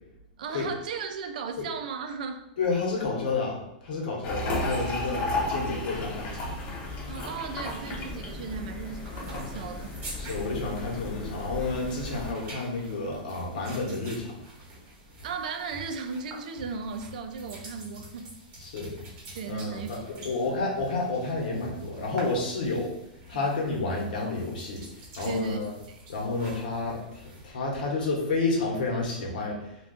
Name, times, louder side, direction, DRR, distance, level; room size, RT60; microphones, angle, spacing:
voice 1, 0.4-2.4 7.1-9.9 15.2-18.3 19.3-19.9 20.2-20.3 23.3-23.5 25.2-25.6 25.9-26.0, right 5 dB, 65° right, 7 dB, 0.3 m, -36 dB
voice 2, 2.6-6.5 10.2-14.3 18.6-18.9 19.5-22.9 23.3-25.7 26.1-29.8, left 3 dB, 75° left, -1 dB, 0.9 m, -30 dB
sound 1, 4.2-12.3, left 2 dB, 35° left, 0.6 m, -34 dB
sound 2, 9.0-27.5, right 1 dB, 35° right, 0.8 m, -47 dB
2.4 x 2.3 x 3.6 m, 0.86 s
supercardioid pair, 170°, 5 cm